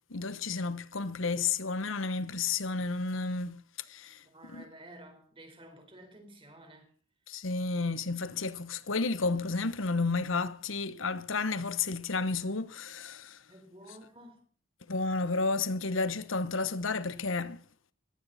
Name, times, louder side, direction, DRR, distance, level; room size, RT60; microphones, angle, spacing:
voice 1, 0.1-3.6 3.9-4.6 7.3-13.4 14.9-17.6, left 4 dB, 85° left, 1.1 m, -32 dB
voice 2, 4.2-6.9 13.5-14.4, right 1 dB, 25° right, 4.3 m, -52 dB
19.0 x 15.5 x 4.2 m
head